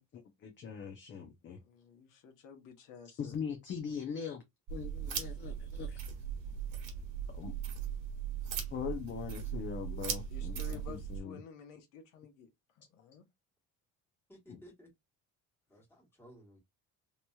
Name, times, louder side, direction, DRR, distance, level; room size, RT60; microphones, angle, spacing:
voice 1, 0.1-1.6 3.2-4.4 4.7-6.0 7.3-7.5 8.7-11.4 14.5-14.6, left 7 dB, 35° left, 0.6 m, -41 dB
voice 2, 1.6-3.3 10.3-12.5 12.8-13.2, left 7 dB, 80° left, 0.9 m, -52 dB
sound 1, 4.7-11.2, right 8 dB, 75° right, 1.3 m, -39 dB
voice 3, 10.4-10.8 14.3-14.9 15.7-16.6, equal, 5° left, 1.6 m, -57 dB
3.0 x 2.9 x 2.3 m
cardioid pair, 155°, 32 cm